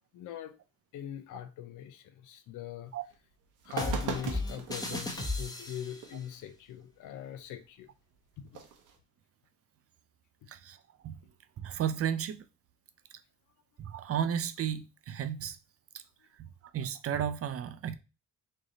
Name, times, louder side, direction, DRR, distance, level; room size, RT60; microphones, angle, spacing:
voice 1, 0.1-0.5 0.9-2.9 3.6-7.9 8.4-8.6, left 10 dB, 85° left, 0.6 m, -42 dB
sound 1, 3.1-3.2 3.6-5.3 6.0-6.1 8.5-8.9, right 6 dB, 90° right, 0.9 m, -38 dB
sound 2, 3.8-6.1, left 2 dB, 10° left, 0.9 m, -35 dB
voice 2, 11.6-12.5 13.8-15.6 16.4-18.0, right 9 dB, 50° right, 0.5 m, -33 dB
3.2 x 2.7 x 3.8 m
cardioid pair, 90°, 30 cm